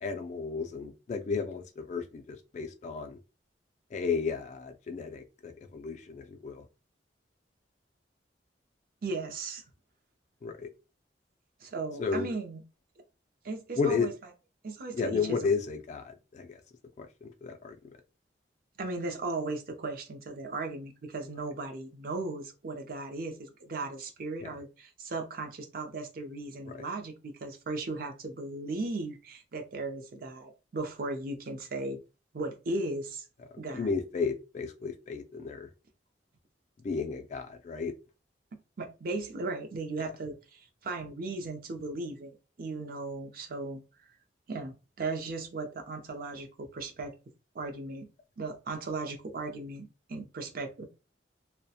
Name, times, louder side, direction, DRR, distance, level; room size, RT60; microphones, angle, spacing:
voice 1, 0.0-3.2 3.9-6.6 10.4-10.7 12.0-12.3 13.8-14.1 15.0-16.6 17.0-17.8 24.4-24.5 33.7-35.7 36.8-37.9, left 5 dB, 40° left, 0.3 m, -33 dB
voice 2, 9.0-9.6 11.6-12.6 13.4-14.1 14.6-15.5 18.8-32.0 32.3-33.2 33.6-33.9 38.8-43.8 44.5-47.1 47.5-48.1 48.4-50.9, right 3 dB, 55° right, 0.5 m, -37 dB
2.3 x 2.1 x 2.7 m
head